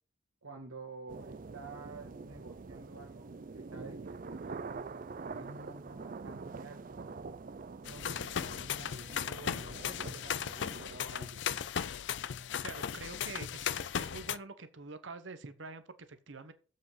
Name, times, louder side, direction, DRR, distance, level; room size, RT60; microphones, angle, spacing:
voice 1, 0.4-5.0 5.3-7.1 7.9-11.4, right 3 dB, 85° right, -1 dB, 1.8 m, -50 dB
sound 1, 1.1-11.0, right 4 dB, 40° right, 0.4 m, -45 dB
sound 2, 7.9-14.4, left 8 dB, 60° left, 0.4 m, -37 dB
voice 2, 12.6-16.5, right 3 dB, 65° right, 11 dB, 0.9 m, -46 dB
7.7 x 5.3 x 5.6 m, 0.37 s
head